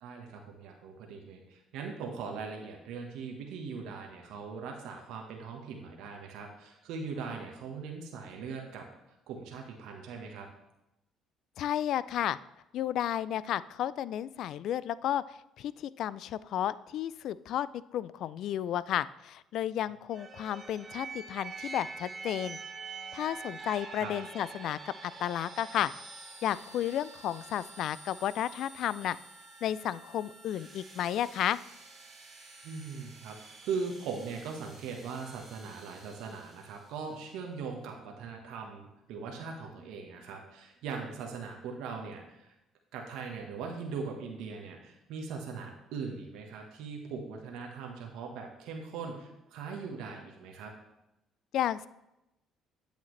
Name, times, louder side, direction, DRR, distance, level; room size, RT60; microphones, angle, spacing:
voice 1, 0.0-8.9 9.3-10.5 24.0-24.1 32.6-42.5 42.9-50.7, right 5 dB, 75° right, 1 dB, 1.2 m, -40 dB
voice 2, 11.6-12.4 12.7-22.6 23.1-25.9 26.4-29.2 29.6-31.6 51.5-51.9, left 11 dB, 70° left, 18 dB, 0.3 m, -32 dB
sound 1, 20.1-36.8, right 4 dB, 45° right, 2.2 m, -47 dB
8.7 x 8.4 x 3.2 m, 0.90 s
supercardioid pair, 70°, 0 cm